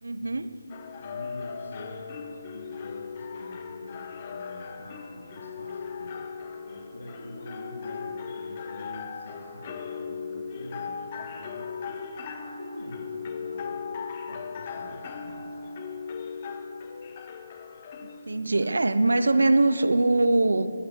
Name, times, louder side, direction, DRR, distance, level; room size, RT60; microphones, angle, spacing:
voice 1, 0.0-0.6 18.0-20.7, right 2 dB, 80° right, 12 dB, 0.9 m, -22 dB
sound 1, 0.7-20.3, left 5 dB, 30° left, 0.9 m, -38 dB
voice 2, 1.0-12.0 12.4-13.7 14.2-15.5, left 1 dB, 80° left, -4 dB, 3.3 m, -45 dB
18.5 x 11.5 x 6.6 m, 2.7 s
figure-of-eight pair, 165°, 0 cm